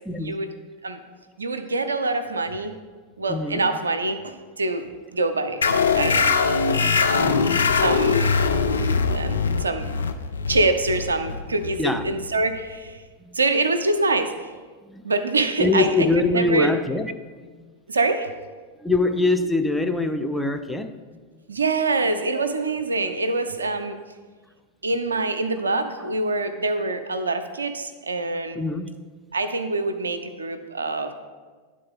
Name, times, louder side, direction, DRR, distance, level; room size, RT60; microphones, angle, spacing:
voice 1, 1.4-2.7 3.2-5.6 5.9-6.3 7.8-8.3 9.1-10.0 10.5-13.0 13.3-14.5 15.0-16.1 16.3-16.7 17.9-18.3 21.5-24.0 24.8-28.6 29.3-31.1, right 2 dB, 75° right, 9 dB, 0.4 m, -25 dB
voice 2, 3.3-3.7 7.2-7.5 11.8-12.1 13.2-13.4 14.8-15.1 15.6-17.2 17.4-17.7 18.8-21.2 28.6-28.9, left 3 dB, 5° left, 7 dB, 0.4 m, -24 dB
sound 1, 5.6-12.7, left 5 dB, 70° left, 0.4 m, -22 dB
10.0 x 3.7 x 3.7 m, 1.4 s
figure-of-eight pair, 90°, 0 cm